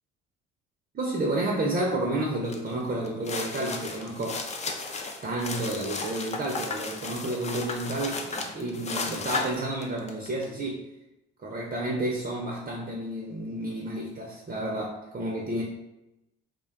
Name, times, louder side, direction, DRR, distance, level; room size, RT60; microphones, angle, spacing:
voice 1, 0.9-4.4 5.2-10.8 11.4-15.6, right 1 dB, 25° right, -1 dB, 0.6 m, -30 dB
sound 1, 2.5-2.7 3.1-10.4, left 3 dB, 20° left, 0.4 m, -34 dB
2.4 x 2.2 x 2.3 m, 0.92 s
hypercardioid pair, 55°, 32 cm